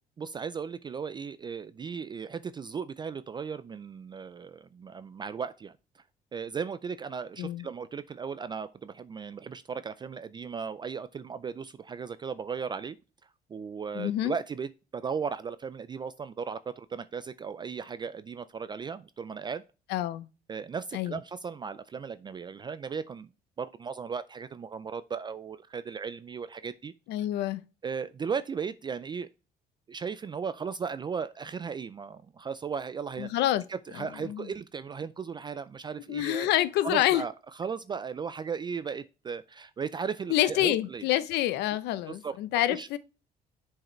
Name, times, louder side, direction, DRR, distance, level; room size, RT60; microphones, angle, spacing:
voice 1, 0.2-5.7 6.3-13.0 13.5-19.6 20.5-23.3 23.6-26.9 27.8-29.3 29.9-33.4 33.7-36.5 36.8-41.1 42.1-42.4 42.7-43.0, right 6 dB, 25° right, 0.3 m, -36 dB
voice 2, 13.9-14.3 19.9-20.3 20.9-21.2 27.1-27.6 33.2-33.6 34.0-34.5 36.1-37.2 40.3-43.0, left 14 dB, 85° left, 0.6 m, -27 dB
7.6 x 4.7 x 3.1 m
cardioid pair, 110°, 17 cm